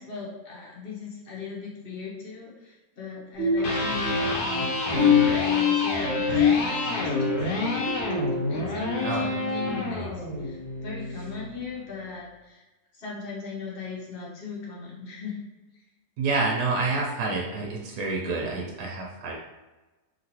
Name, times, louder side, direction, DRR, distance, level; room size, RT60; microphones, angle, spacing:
voice 1, 0.0-7.4 8.5-10.1 10.4-12.6 12.9-15.4, left 5 dB, 45° left, -4 dB, 0.9 m, -38 dB
sound 1, 3.4-9.0 9.5-9.8 10.3-10.5, left 7 dB, 45° right, 0.8 m, -26 dB
Electric guitar, 3.5-11.6, left 1 dB, 85° left, 1.3 m, -29 dB
voice 2, 16.2-19.4, right 3 dB, 80° right, -1 dB, 1.1 m, -28 dB
2.9 x 2.8 x 2.8 m, 1.1 s
omnidirectional pair, 1.7 m